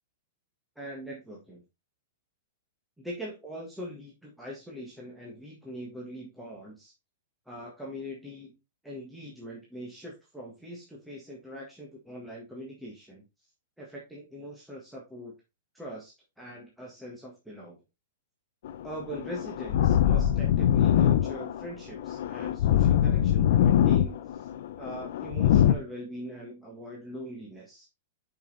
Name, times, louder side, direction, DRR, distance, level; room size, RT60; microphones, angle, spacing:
voice 1, 0.7-1.6 3.0-6.9 7.4-8.5 8.8-13.2 13.8-15.3 15.7-17.8 18.8-24.5 24.8-27.9, equal, ahead, -4 dB, 1.6 m, -42 dB
sound 1, 18.6-25.7, left 10 dB, 55° left, 0.7 m, -23 dB
6.5 x 5.4 x 4.0 m, 0.25 s
supercardioid pair, 165°, 0 cm